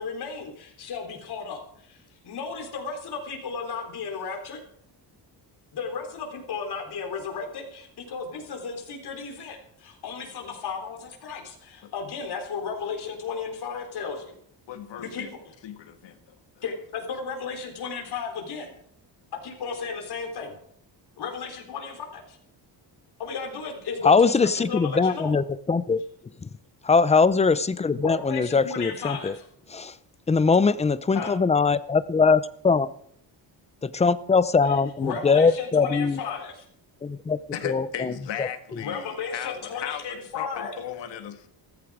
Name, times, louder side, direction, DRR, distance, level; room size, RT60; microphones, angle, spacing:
voice 1, 0.0-1.6 1.9-4.6 5.7-14.3 15.0-15.5 16.6-18.8 19.4-20.6 21.2-22.4 23.2-25.4 27.9-29.4 31.1-31.3 34.6-36.7 38.8-40.8, left 5 dB, 65° left, 3 dB, 3.9 m, -34 dB
voice 2, 14.7-15.3 15.6-16.2 37.5-41.5, left 9 dB, 85° left, 7 dB, 1.7 m, -36 dB
voice 3, 24.0-26.0 26.4-26.5 26.8-29.3 29.7-29.9 30.3-32.9 33.8-36.2 37.0-37.4 37.6-38.1 38.4-38.5, left 4 dB, 15° left, 15 dB, 0.5 m, -21 dB
15.0 x 14.5 x 4.9 m, 0.67 s
cardioid pair, 140°, 42 cm